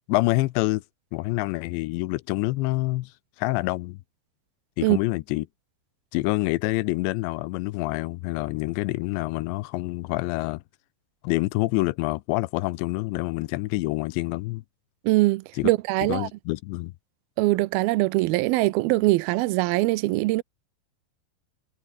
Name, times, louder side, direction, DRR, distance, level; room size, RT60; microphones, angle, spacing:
voice 1, 0.1-0.8 1.1-3.1 3.4-4.0 4.8-5.5 6.1-10.6 11.2-14.6 15.6-15.7 16.1-16.9, left 20 dB, 90° left, 3.0 m, -27 dB
voice 2, 15.0-16.3 17.4-20.4, right 20 dB, 90° right, 2.2 m, -22 dB
omnidirectional pair, 5.1 m